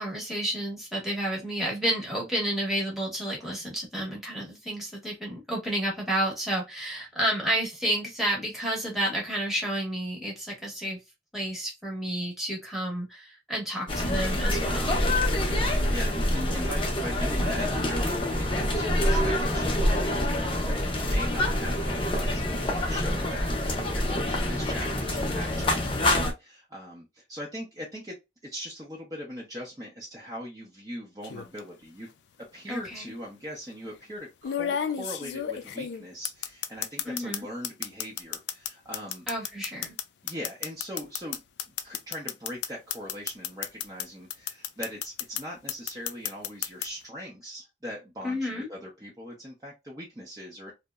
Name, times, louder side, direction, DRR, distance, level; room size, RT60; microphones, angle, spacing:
voice 1, 0.0-11.0 11.3-15.0 32.7-33.1 37.0-37.5 39.3-39.9 48.2-48.7, right 1 dB, ahead, -3 dB, 0.9 m, -31 dB
sound 1, 13.9-26.3, left 1 dB, 25° left, 0.6 m, -26 dB
voice 2, 15.5-28.2 28.4-32.1 32.5-39.3 40.2-41.4 41.8-50.7, equal, 20° right, -4 dB, 0.5 m, -40 dB
sound 2, 31.2-31.6 32.8-32.9 34.4-37.4 37.6-44.0 44.3-45.4 45.7-46.9, left 9 dB, 70° left, 0.3 m, -31 dB
2.7 x 2.0 x 2.2 m, 0.22 s
head